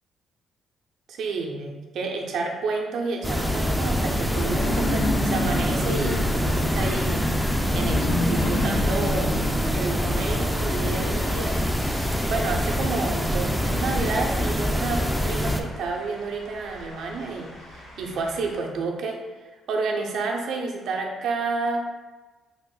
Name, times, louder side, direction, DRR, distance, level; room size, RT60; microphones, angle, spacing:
voice 1, 1.1-9.4 9.7-21.8, right 3 dB, 75° right, 1 dB, 0.5 m, -30 dB
sound 1, 3.2-15.6, equal, ahead, 0.3 m, -25 dB
sound 2, 4.2-18.6, left 1 dB, 80° left, 1.0 m, -39 dB
sound 3, 4.3-9.7, left 1 dB, 50° left, 0.6 m, -28 dB
3.4 x 2.1 x 3.7 m, 1.3 s
cardioid pair, 90°, 0 cm